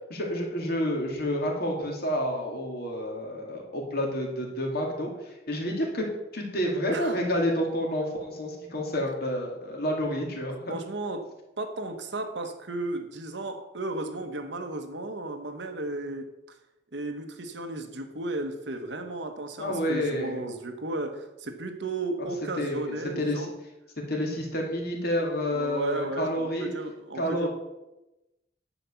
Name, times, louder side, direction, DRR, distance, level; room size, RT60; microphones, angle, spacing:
voice 1, 0.1-6.1 6.3-10.7 19.6-20.4 22.6-23.5 24.1-26.7 27.1-27.5, equal, 55° left, 0 dB, 2.4 m, -29 dB
voice 2, 10.7-11.3 11.6-16.6 16.9-23.5 25.5-27.5, right 2 dB, 70° right, 6 dB, 1.1 m, -34 dB
10.0 x 5.1 x 7.1 m, 0.96 s
head